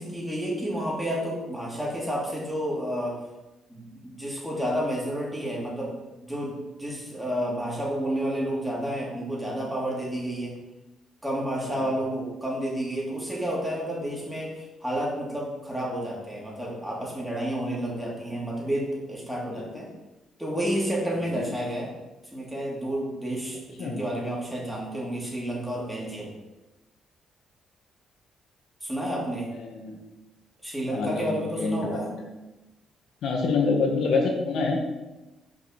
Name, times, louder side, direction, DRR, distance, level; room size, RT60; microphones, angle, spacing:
voice 1, 0.0-3.2 3.7-5.9 6.2-10.6 11.2-19.9 20.4-21.9 22.3-26.3 28.8-29.5 30.6-32.1, equal, 5° right, -4 dB, 2.9 m, -30 dB
voice 2, 29.6-30.0 30.8-32.2 33.2-34.8, left 4 dB, 70° left, 2 dB, 1.7 m, -27 dB
6.4 x 5.3 x 6.0 m, 1.0 s
cardioid pair, 90°, 0 cm